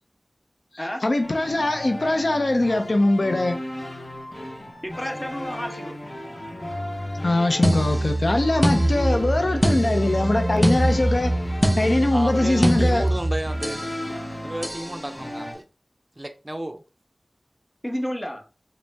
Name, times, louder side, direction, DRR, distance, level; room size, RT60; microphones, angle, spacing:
voice 1, 1.0-3.6 7.2-11.3 11.8-13.0, left 2 dB, 70° left, 0.5 m, -22 dB
sound 1, 1.2-15.5, left 1 dB, 40° left, 0.9 m, -35 dB
voice 2, 4.8-6.0 17.8-18.4, equal, 15° left, 1.0 m, -31 dB
sound 2, 7.6-13.9 14.6-14.9, right 1 dB, 10° right, 0.8 m, -23 dB
voice 3, 12.1-13.8 14.4-15.6 16.2-16.8, right 1 dB, 30° right, 0.5 m, -32 dB
5.2 x 2.0 x 3.4 m
wide cardioid pair, 45°, 0 cm